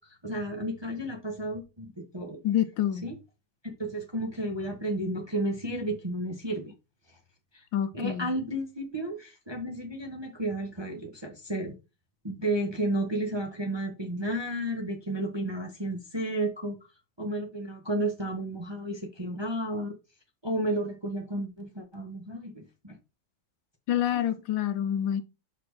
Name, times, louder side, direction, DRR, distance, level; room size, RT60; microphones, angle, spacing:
voice 1, 0.2-2.4 3.0-3.1 3.6-6.7 7.5-7.6 7.9-11.7 12.2-16.8 17.2-19.9 20.4-23.0 23.9-24.2, right 1 dB, 20° right, 0.8 m, -32 dB
voice 2, 2.4-3.1 7.7-8.3 23.9-25.2, left 10 dB, 75° left, 1.3 m, -27 dB
5.8 x 4.3 x 4.8 m
omnidirectional pair, 2.1 m